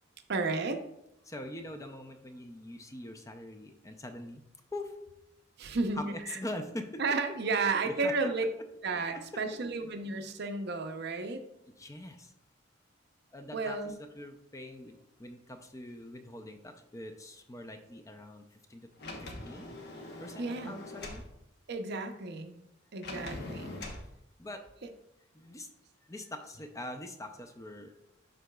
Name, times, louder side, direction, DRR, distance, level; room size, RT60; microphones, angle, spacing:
voice 1, 0.3-0.8 5.6-6.4 7.0-8.5 8.8-11.4 13.5-13.9 20.4-20.8 21.7-22.6 22.9-23.9, right 3 dB, 60° right, 6 dB, 0.6 m, -32 dB
voice 2, 1.2-4.4 4.7-5.0 5.9-7.0 7.7-8.3 8.9-9.4 11.8-12.3 13.3-18.9 19.2-19.7 20.2-21.2 24.4-24.6 25.3-25.7 26.1-27.9, left 1 dB, 15° left, 6 dB, 0.4 m, -43 dB
Sliding door, 19.0-21.3 23.0-24.1, left 2 dB, 60° left, 1.0 m, -42 dB
11.0 x 3.9 x 2.3 m, 0.83 s
head